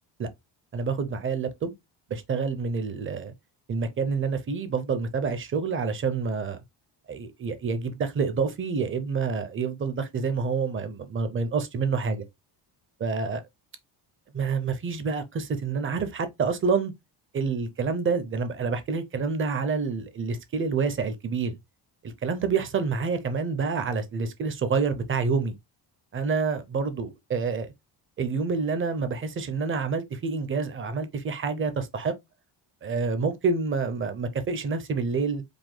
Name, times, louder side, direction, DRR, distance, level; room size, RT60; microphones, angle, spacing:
voice 1, 0.7-1.7 2.1-3.3 3.7-6.6 7.1-12.2 13.0-13.4 14.3-16.9 17.3-21.6 22.0-25.5 26.1-27.7 28.2-32.1 32.8-35.4, right 5 dB, 30° right, 0.5 m, -28 dB
4.9 x 2.1 x 3.7 m
cardioid pair, 175°, 43 cm